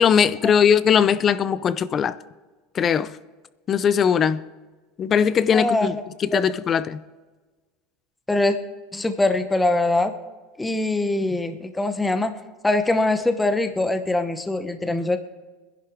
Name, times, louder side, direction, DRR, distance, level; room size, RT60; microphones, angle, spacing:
voice 1, 0.0-2.2 2.7-3.2 3.7-4.4 5.0-7.0, left 7 dB, 30° left, 0.5 m, -20 dB
voice 2, 5.5-6.0 6.3-6.4 8.3-8.6 8.9-10.1 10.6-12.3 12.6-15.2, left 2 dB, 10° left, 0.9 m, -22 dB
21.5 x 11.0 x 3.6 m
supercardioid pair, 125°, 0 cm